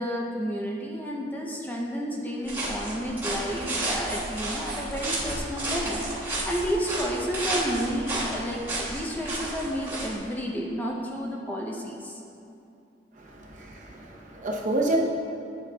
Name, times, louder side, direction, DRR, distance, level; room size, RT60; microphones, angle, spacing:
voice 1, 0.0-12.2, equal, 10° left, -2 dB, 0.5 m, -31 dB
sound 1, 2.4-10.1, right 1 dB, 15° right, 1.4 m, -32 dB
voice 2, 13.4-15.0, right 2 dB, 45° right, -1 dB, 0.7 m, -29 dB
8.4 x 7.4 x 2.2 m, 2.7 s
head